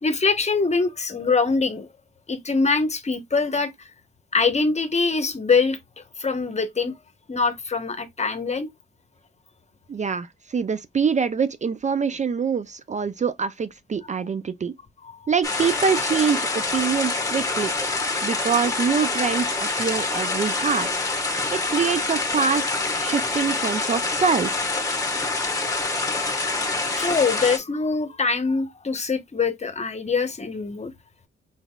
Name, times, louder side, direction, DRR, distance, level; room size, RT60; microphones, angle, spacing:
voice 1, 0.0-1.9 2.3-3.9 4.3-6.9 7.3-8.7 26.5-26.6 27.0-30.9, left 4 dB, 35° left, 1.0 m, -23 dB
voice 2, 9.9-14.7 15.3-17.7 18.2-20.9 21.5-24.7, right 6 dB, 35° right, 0.4 m, -25 dB
sound 1, 15.4-27.6, left 3 dB, 15° left, 1.3 m, -26 dB
4.1 x 3.9 x 2.3 m
cardioid pair, 80°, 21 cm